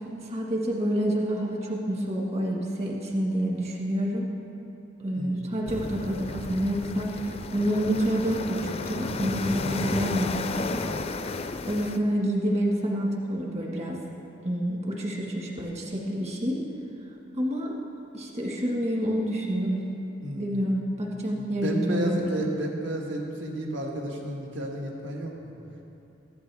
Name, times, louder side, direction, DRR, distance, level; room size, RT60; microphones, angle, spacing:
voice 1, 0.2-4.3 5.0-10.9 11.7-14.0 14.4-16.6 17.4-17.7 18.1-19.8 20.4-22.3, equal, 35° right, -1 dB, 1.7 m, -28 dB
voice 2, 5.1-5.6 20.2-20.6 21.3-25.3, right 1 dB, 75° right, 0 dB, 1.5 m, -31 dB
sound 1, 5.7-12.0, left 3 dB, 30° left, 0.4 m, -33 dB
15.0 x 11.0 x 3.5 m, 2.8 s
head